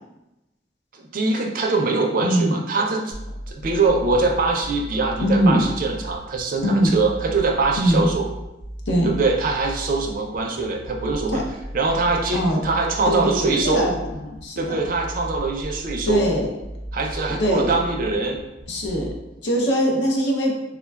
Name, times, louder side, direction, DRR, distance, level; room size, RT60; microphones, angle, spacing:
voice 1, 0.9-3.1 3.5-8.3 9.0-11.4 11.7-13.9 14.6-16.2 16.9-18.4, right 3 dB, 50° right, 2 dB, 0.4 m, -23 dB
voice 2, 2.2-2.6 5.2-5.7 6.6-7.0 7.8-8.1 8.9-9.2 11.3-11.4 12.3-12.6 13.1-14.8 16.1-16.5 17.4-17.7 18.7-19.1 19.4-20.5, equal, 85° left, -1 dB, 0.6 m, -21 dB
sound 1, 3.1-19.1, equal, 40° left, 0.5 m, -35 dB
3.4 x 2.2 x 2.2 m, 0.95 s
head